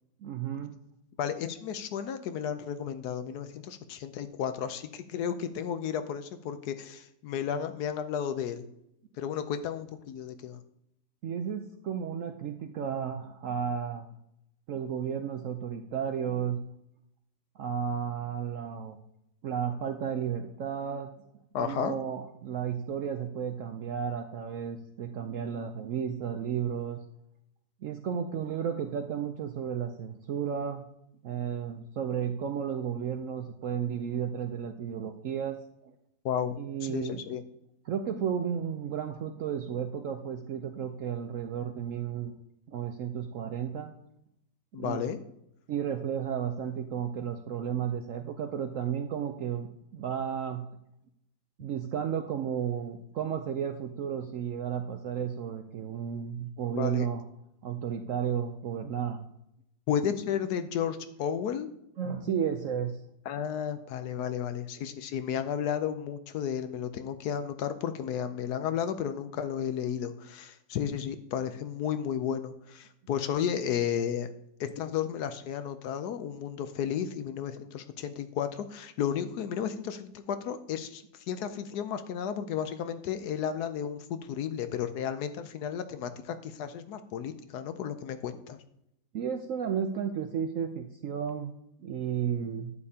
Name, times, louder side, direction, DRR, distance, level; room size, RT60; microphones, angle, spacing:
voice 1, 0.2-0.7 11.2-14.1 14.7-16.6 17.6-19.0 19.4-21.1 21.6-27.0 27.8-30.9 31.2-35.6 35.8-35.9 36.6-37.2 37.9-42.3 42.7-43.9 44.8-45.0 45.7-50.6 51.6-57.2 57.6-59.3 62.0-62.9 89.1-91.5 91.8-92.7, right 8 dB, 70° right, 6 dB, 0.7 m, -33 dB
voice 2, 1.2-8.6 9.2-10.6 21.5-21.9 36.2-37.4 44.7-45.2 56.6-57.1 59.9-61.7 63.3-74.3 74.6-88.6, left 8 dB, 70° left, 10 dB, 1.1 m, -33 dB
11.0 x 8.7 x 2.8 m, 0.80 s
omnidirectional pair, 1.9 m